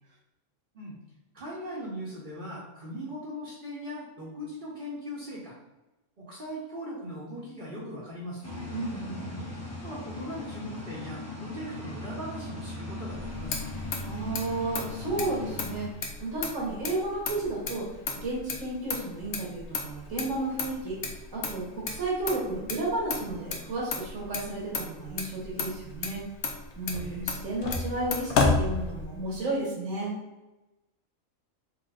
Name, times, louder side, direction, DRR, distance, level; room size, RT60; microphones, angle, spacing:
voice 1, 1.3-5.5 6.2-8.6 9.8-13.9 27.0-27.3, equal, 45° right, -6 dB, 0.9 m, -39 dB
sound 1, 8.4-15.9, left 2 dB, 15° left, 0.5 m, -39 dB
voice 2, 8.7-9.4 14.1-15.9 16.2-21.0 21.3-26.2 26.8-30.1, right 2 dB, 70° right, -5 dB, 1.4 m, -32 dB
Motor vehicle (road), 13.1-29.4, left 4 dB, 65° left, 0.8 m, -33 dB
4.8 x 2.9 x 2.3 m, 1.0 s
omnidirectional pair, 1.4 m